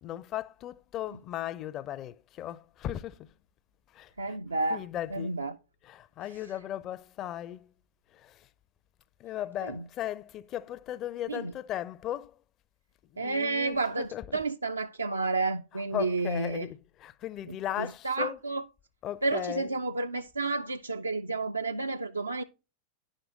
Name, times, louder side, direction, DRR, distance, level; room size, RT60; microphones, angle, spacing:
voice 1, 0.0-3.3 3.9-4.4 4.7-5.4 5.8-7.7 8.1-8.5 9.2-12.4 13.1-14.4 15.7-18.5 19.0-19.8, left 12 dB, 35° left, 0.5 m, -37 dB
voice 2, 4.2-5.6 9.6-9.8 11.3-11.5 13.2-16.7 17.5-18.6 19.2-22.4, right 3 dB, 80° right, 0.4 m, -31 dB
10.5 x 6.4 x 3.8 m
figure-of-eight pair, 90°, 0 cm